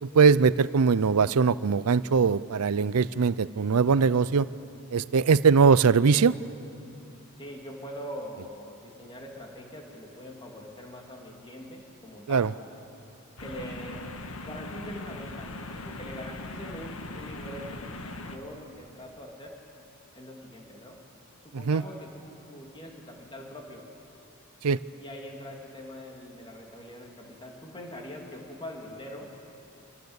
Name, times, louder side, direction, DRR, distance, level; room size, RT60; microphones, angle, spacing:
voice 1, 0.0-4.5 4.9-6.3 12.3-12.5 21.7-21.8 24.6-24.8, right 5 dB, 80° right, 18 dB, 0.5 m, -21 dB
voice 2, 7.4-12.5 13.4-14.0 14.4-19.5 20.2-21.0 21.4-23.9 25.0-29.3, equal, 20° left, 0 dB, 2.8 m, -43 dB
sound 1, 13.4-18.4, left 2 dB, 65° left, 1.6 m, -40 dB
27.0 x 18.5 x 8.1 m, 2.8 s
head